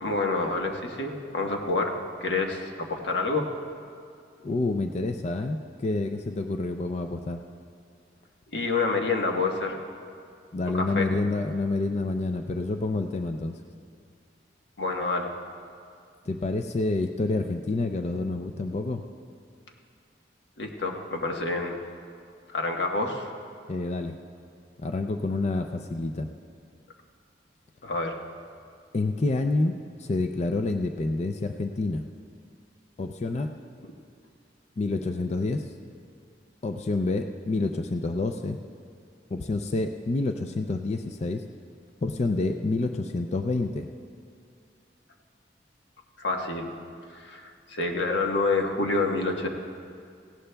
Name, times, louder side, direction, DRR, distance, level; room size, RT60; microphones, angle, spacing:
voice 1, 0.0-3.5 8.5-9.8 10.7-11.1 14.8-15.3 20.6-21.8 22.5-23.3 27.8-28.2 46.2-46.7 47.1-49.5, left 3 dB, 85° left, 2 dB, 1.2 m, -28 dB
voice 2, 4.4-7.4 10.5-13.6 16.3-19.0 23.7-24.2 24.8-26.3 28.9-29.7 30.0-32.0 33.0-33.5 34.8-35.7 36.6-38.6 39.3-41.5 42.0-43.9, left 2 dB, 40° left, 6 dB, 0.4 m, -28 dB
18.0 x 16.5 x 2.3 m, 2.4 s
head